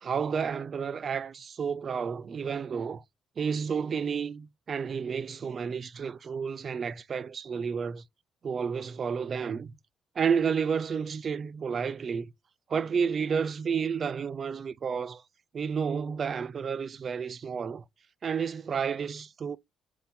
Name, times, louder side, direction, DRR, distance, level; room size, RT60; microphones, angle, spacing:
voice 1, 0.0-3.0 3.4-8.0 8.4-9.8 10.2-12.3 12.7-15.2 15.5-17.8 18.2-19.6, right 6 dB, 50° right, 0.3 m, -31 dB
3.6 x 2.7 x 4.1 m
cardioid pair, 90°, 0 cm